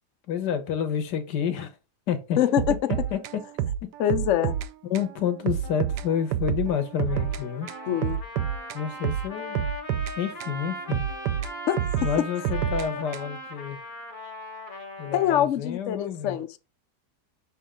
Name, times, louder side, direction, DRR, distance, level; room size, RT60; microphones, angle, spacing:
voice 1, 0.3-1.7 2.1-2.4 2.9-3.4 4.9-7.7 8.7-9.6 10.2-11.0 12.0-13.8 15.0-16.4, left 8 dB, 80° left, 1.6 m, -29 dB
voice 2, 2.4-2.7 4.0-4.6 7.9-8.2 11.7-11.8 12.2-12.3 15.1-16.5, left 11 dB, 60° left, 0.8 m, -24 dB
sound 1, 2.6-4.7 4.9-5.1 5.5-7.4 7.7-10.6 10.9-13.5, right 10 dB, 80° right, 1.2 m, -29 dB
Trumpet, 7.1-15.5, left 1 dB, 30° left, 1.6 m, -38 dB
6.1 x 4.4 x 3.7 m
omnidirectional pair, 1.8 m